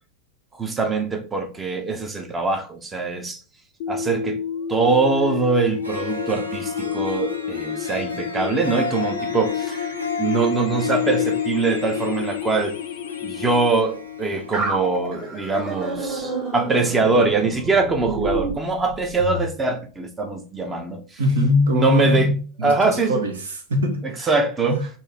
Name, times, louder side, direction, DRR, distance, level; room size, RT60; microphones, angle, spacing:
voice 1, 0.5-3.4 3.9-4.4 4.7-9.9 10.2-12.8 13.2-21.2 21.7-22.3 22.6-23.2 24.3-24.8, right 3 dB, 15° right, 0.8 m, -23 dB
sound 1, 3.8-13.8, left 7 dB, 55° left, 0.4 m, -32 dB
Harp, 5.5-5.6 5.8-15.3, left 7 dB, 85° right, 0.7 m, -29 dB
sound 2, 14.5-19.4, right 3 dB, 35° right, 1.4 m, -29 dB
voice 2, 21.2-24.3 24.6-24.9, left 1 dB, 70° right, 1.0 m, -22 dB
4.0 x 2.8 x 3.5 m
figure-of-eight pair, 85°, 0 cm